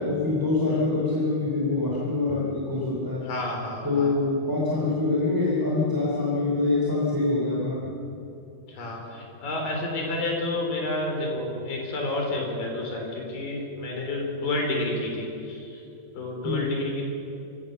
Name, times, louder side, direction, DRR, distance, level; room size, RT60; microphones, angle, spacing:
voice 1, 0.0-3.3 3.8-7.8 16.4-16.6, left 3 dB, 5° right, -4 dB, 2.4 m, -25 dB
voice 2, 3.2-4.2 8.7-15.8 16.1-17.0, left 2 dB, 85° left, 1 dB, 5.4 m, -30 dB
25.5 x 16.0 x 6.7 m, 2.9 s
omnidirectional pair, 3.9 m